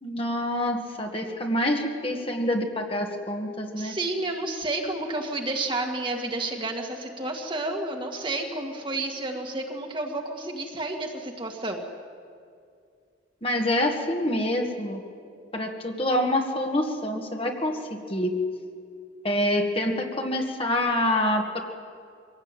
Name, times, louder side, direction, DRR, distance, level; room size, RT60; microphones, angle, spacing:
voice 1, 0.0-4.0 13.4-15.0 15.5-18.3 19.2-21.6, left 1 dB, 30° left, 2 dB, 1.8 m, -26 dB
voice 2, 3.8-11.8, right 2 dB, 25° right, 2 dB, 2.0 m, -31 dB
24.0 x 17.5 x 9.0 m, 2.3 s
head